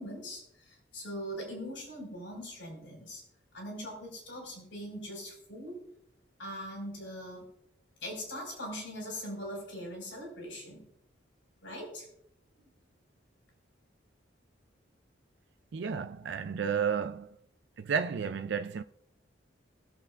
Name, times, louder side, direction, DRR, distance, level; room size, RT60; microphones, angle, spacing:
voice 1, 0.0-3.2 3.5-5.8 6.4-7.4 8.0-10.8 11.6-12.1, equal, 85° left, 4.9 m, -41 dB
voice 2, 15.7-17.4 17.8-18.8, right 6 dB, 70° right, 0.4 m, -32 dB
21.5 x 7.4 x 2.4 m
head